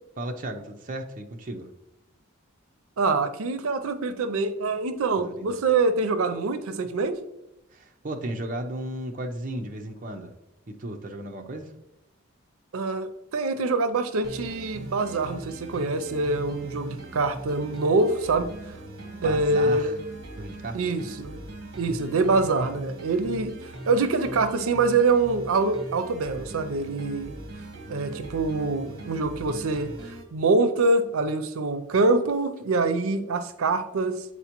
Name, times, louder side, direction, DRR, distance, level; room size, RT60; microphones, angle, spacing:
voice 1, 0.2-1.7 5.2-5.6 7.7-10.3 10.7-11.7 19.2-20.0 20.4-20.8, right 1 dB, 40° right, 3 dB, 0.5 m, -35 dB
voice 2, 3.0-7.2 12.7-18.5 19.2-19.9 20.7-23.5 23.9-27.4 27.9-29.9 30.3-34.2, right 3 dB, 85° right, 10 dB, 0.5 m, -25 dB
sound 1, 14.2-30.2, right 1 dB, 55° right, 1.1 m, -40 dB
8.2 x 4.3 x 2.9 m, 0.88 s
head